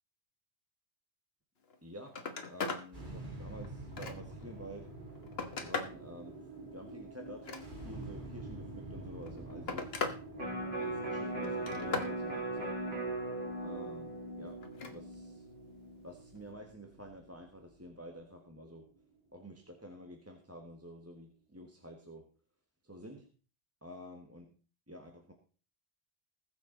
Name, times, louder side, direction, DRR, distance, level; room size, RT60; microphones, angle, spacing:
Telephone, 1.6-1.8 2.1-2.9 3.3-4.4 5.0-6.0 7.3-8.1 9.1-10.2 10.5-11.0 11.4-12.1 14.6-15.0 16.4-16.5, left 4 dB, 70° left, 1.6 m, -39 dB
voice 1, 1.8-2.2 2.5-4.9 5.6-7.5 7.8-9.9 10.7-12.7 13.6-14.6 14.9-15.4 16.0-18.9 19.3-22.3 22.8-23.3 23.8-24.5 24.9-25.3, equal, 15° right, 2 dB, 1.5 m, -49 dB
sound 1, 2.9-19.3, right 2 dB, 50° right, 2.9 m, -48 dB
Electric guitar, 10.4-16.6 17.0-17.1, right 2 dB, 70° right, 4.6 m, -39 dB
20.5 x 7.1 x 3.9 m, 0.39 s
omnidirectional pair, 1.1 m